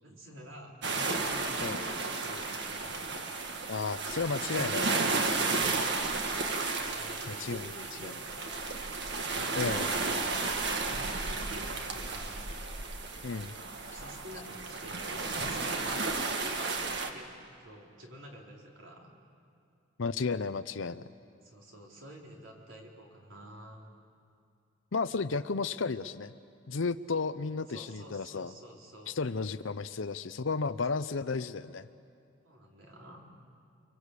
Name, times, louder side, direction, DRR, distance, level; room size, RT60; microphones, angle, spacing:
voice 1, 0.0-3.0 6.7-8.8 10.8-12.6 13.9-17.3 17.6-19.2 21.4-23.9 27.7-29.2 32.4-33.2, equal, 75° right, -1 dB, 4.3 m, -49 dB
sound 1, 0.8-17.1, right 3 dB, 60° right, 1.8 m, -33 dB
voice 2, 3.7-5.0 7.4-7.6 8.0-8.1 9.5-9.9 13.2-13.5 20.0-21.0 24.9-26.3 26.7-28.5 29.1-31.9, left 4 dB, 80° left, 11 dB, 0.7 m, -33 dB
29.5 x 23.5 x 8.4 m, 2.4 s
head